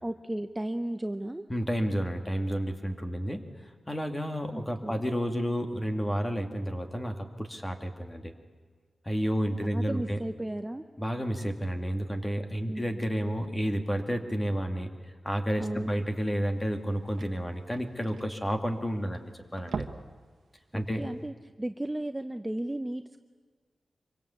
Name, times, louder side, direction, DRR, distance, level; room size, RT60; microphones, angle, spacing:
voice 1, 0.0-1.5 4.5-5.0 9.6-10.8 12.7-13.1 15.6-15.9 20.7-23.2, right 1 dB, 10° right, 8 dB, 0.7 m, -35 dB
voice 2, 1.5-3.4 3.9-8.3 9.0-10.2 11.0-14.9 15.2-19.9 20.7-21.1, equal, 15° left, 5 dB, 2.3 m, -31 dB
sound 1, 16.1-16.2 16.5-16.6 16.8-19.1 19.5-20.2 20.6-20.7 21.2-21.3, right 5 dB, 85° right, 1.4 m, -40 dB
25.0 x 24.0 x 8.3 m, 1.5 s
wide cardioid pair, 130°, 0 cm